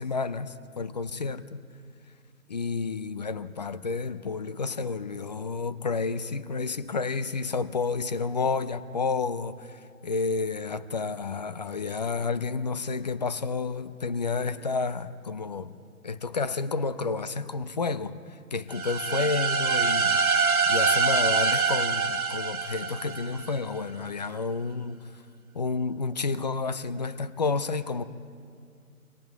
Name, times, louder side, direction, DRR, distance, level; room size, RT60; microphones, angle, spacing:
voice 1, 0.0-1.6 2.5-15.7 16.0-20.3 20.7-25.0 25.5-28.0, left 4 dB, 30° left, 16 dB, 0.5 m, -30 dB
sound 1, 18.7-23.6, right 5 dB, 75° right, 1.5 m, -25 dB
27.5 x 24.0 x 4.7 m, 2.3 s
figure-of-eight pair, 140°, 44 cm